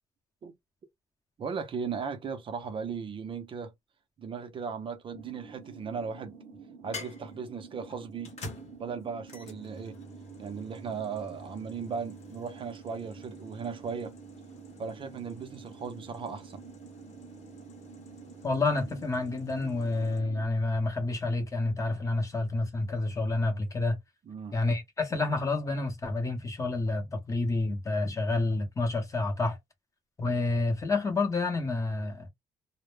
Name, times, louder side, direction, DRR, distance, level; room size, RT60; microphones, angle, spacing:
voice 1, 1.4-3.7 4.2-8.3 8.8-10.0 10.4-14.1 14.8-16.6 24.3-24.6, right 6 dB, 40° right, 0.5 m, -37 dB
sound 1, 5.1-20.5, right 5 dB, 70° right, 0.8 m, -49 dB
sound 2, 5.2-5.9 6.9-20.2, left 2 dB, 55° left, 0.8 m, -49 dB
voice 2, 18.4-24.0 24.5-29.6 30.2-32.3, left 2 dB, 25° left, 0.7 m, -29 dB
2.0 x 2.0 x 3.1 m
cardioid pair, 140°, 13 cm